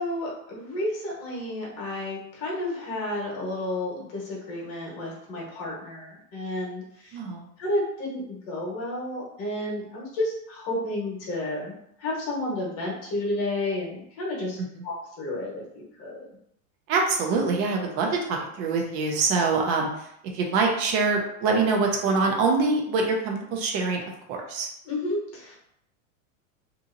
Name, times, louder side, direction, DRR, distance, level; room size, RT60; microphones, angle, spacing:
voice 1, 0.0-7.2 7.6-11.7 12.0-14.6 14.8-16.3 24.8-25.6, left 1 dB, 35° left, -3 dB, 1.1 m, -31 dB
voice 2, 7.1-7.5 16.9-20.1 20.3-24.0 24.3-24.7, right 4 dB, 35° right, 1 dB, 0.6 m, -24 dB
2.8 x 2.7 x 2.5 m, 0.72 s
supercardioid pair, 150°, 42 cm